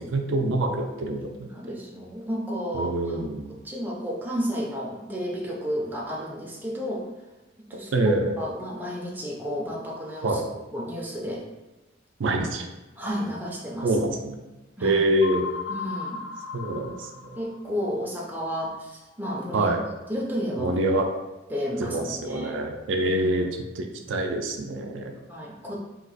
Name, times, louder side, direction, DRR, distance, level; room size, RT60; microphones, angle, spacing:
voice 1, 0.0-1.5 2.7-3.5 7.9-8.4 10.2-10.5 12.2-12.7 13.8-14.4 14.8-15.5 16.5-17.4 19.5-19.8 20.6-21.1 21.8-23.5 23.8-25.1, right 1 dB, 80° right, 3 dB, 0.4 m, -25 dB
voice 2, 1.5-3.2 3.6-7.1 7.7-7.9 8.4-10.4 10.7-11.4 13.0-13.9 14.8-15.0 15.7-16.2 17.4-19.7 20.1-20.8 21.5-22.6 23.2-23.5 25.3-25.8, equal, 10° right, -3 dB, 0.5 m, -32 dB
sound 1, 15.2-17.8, left 5 dB, 70° left, 0.5 m, -35 dB
2.8 x 2.4 x 3.9 m, 1.1 s
head